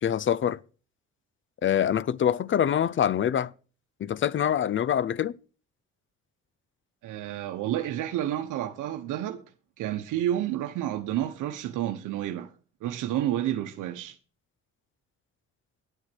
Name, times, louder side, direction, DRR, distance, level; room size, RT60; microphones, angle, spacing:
voice 1, 0.0-0.6 1.6-3.5 4.0-5.4, left 9 dB, 40° left, 0.5 m, -25 dB
voice 2, 7.0-9.4 9.8-12.5 12.8-14.2, right 12 dB, 90° right, 0.9 m, -30 dB
10.0 x 8.8 x 6.1 m
cardioid pair, 90°, 30 cm